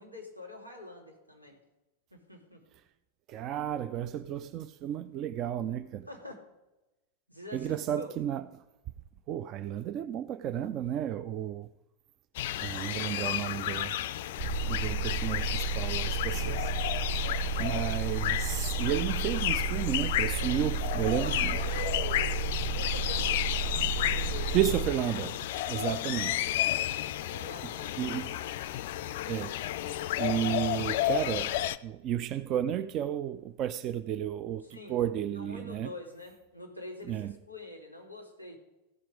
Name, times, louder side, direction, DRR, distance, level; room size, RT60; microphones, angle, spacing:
voice 1, 0.0-1.6 2.1-2.6 6.1-6.4 7.3-8.1 20.3-20.6 20.9-23.6 23.9-24.6 25.8-26.0 26.8-28.3 34.6-35.0 35.3-38.6, left 1 dB, 90° right, 2.0 m, -45 dB
voice 2, 3.3-6.1 7.5-8.4 9.3-11.7 12.6-14.0 14.7-16.7 17.6-21.6 24.5-26.5 28.0-28.3 29.3-29.5 30.2-31.5 31.8-35.9 37.1-37.3, right 10 dB, 35° right, 0.4 m, -32 dB
sound 1, 12.3-31.8, left 13 dB, 55° left, 0.3 m, -32 dB
sound 2, 14.4-24.9, right 5 dB, 60° right, 2.4 m, -33 dB
14.5 x 5.9 x 4.9 m
figure-of-eight pair, 90°, 0 cm